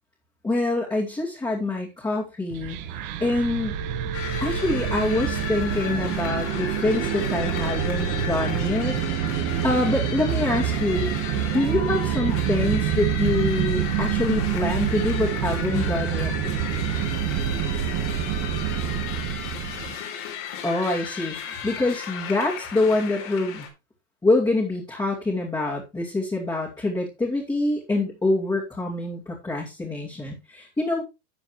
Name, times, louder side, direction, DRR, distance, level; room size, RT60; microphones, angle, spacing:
voice 1, 0.4-2.8 3.2-3.8 4.4-9.0 9.6-11.1 11.5-16.5 20.6-23.7 24.2-31.0, left 2 dB, 10° left, -4 dB, 2.5 m, -25 dB
sound 1, 2.5-19.9, right 9 dB, 50° right, 1.8 m, -27 dB
sound 2, 4.1-23.7, left 8 dB, 60° left, 4.0 m, -35 dB
12.0 x 7.1 x 3.2 m, 0.25 s
supercardioid pair, 130°, 41 cm